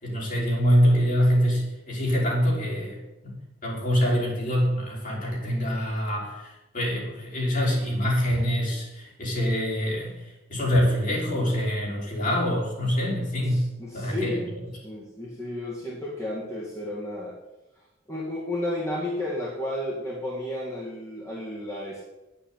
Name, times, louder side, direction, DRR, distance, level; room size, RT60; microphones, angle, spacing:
voice 1, 0.0-3.3 3.6-13.7 13.9-14.5, equal, 45° left, -3 dB, 4.8 m, -25 dB
voice 2, 13.4-14.4 14.8-17.4 18.1-22.0, left 1 dB, 15° left, -5 dB, 2.2 m, -32 dB
9.8 x 9.1 x 8.8 m, 1.0 s
head